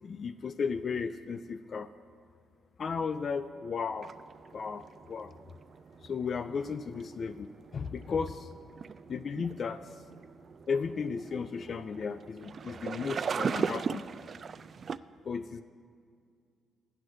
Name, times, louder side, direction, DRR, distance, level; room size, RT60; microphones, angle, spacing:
voice 1, 0.0-1.9 2.8-4.1 4.5-5.3 6.0-8.5 9.1-10.0 10.7-14.1 15.2-15.6, left 5 dB, 50° left, 12 dB, 0.4 m, -35 dB
sound 1, 4.0-15.0, right 6 dB, 45° right, 0.3 m, -39 dB
12.0 x 7.9 x 6.3 m, 2.2 s
cardioid pair, 90°, 0 cm